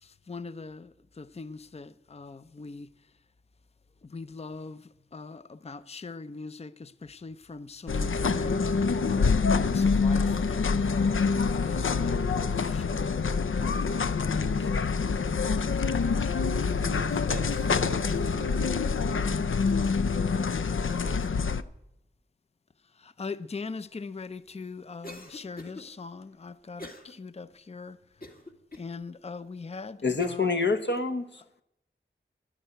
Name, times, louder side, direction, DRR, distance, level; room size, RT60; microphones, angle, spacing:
voice 1, 0.0-3.1 4.0-13.1 13.6-14.8 15.8-16.7 17.1-17.3 22.8-28.3 28.8-30.7, left 4 dB, 30° left, 0.5 m, -42 dB
sound 1, 7.9-21.6, left 5 dB, 85° left, 0.5 m, -26 dB
voice 2, 15.7-16.1 16.8-18.7 19.1-19.8 21.0-21.5, right 5 dB, 55° right, 0.6 m, -45 dB
Cough, 25.0-25.8 26.8-27.1 27.6-27.7 28.2-28.9 29.5-29.6 30.2-30.5, left 1 dB, 50° left, 2.0 m, -43 dB
voice 3, 30.0-31.4, left 4 dB, 65° left, 1.2 m, -27 dB
11.5 x 10.0 x 9.1 m
wide cardioid pair, 45°, 20 cm